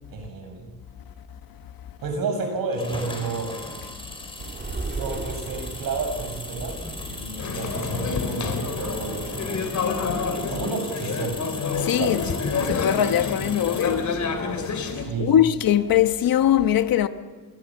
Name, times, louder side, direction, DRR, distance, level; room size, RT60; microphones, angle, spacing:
voice 1, 0.1-0.7 2.0-3.7 4.9-6.8 7.1-9.7 10.5-11.4 12.0-12.2 15.0-15.5, right 4 dB, 75° right, 6.6 m, -31 dB
sound 1, 2.7-14.1, left 2 dB, 15° left, 4.0 m, -38 dB
sound 2, 4.4-9.5, right 3 dB, 30° right, 2.5 m, -37 dB
sound 3, 7.4-15.0, left 5 dB, 55° left, 3.2 m, -28 dB
voice 2, 11.8-12.2 12.6-14.1 15.2-17.1, left 11 dB, 75° left, 1.2 m, -21 dB
30.0 x 23.0 x 7.3 m
wide cardioid pair, 165°, 35 cm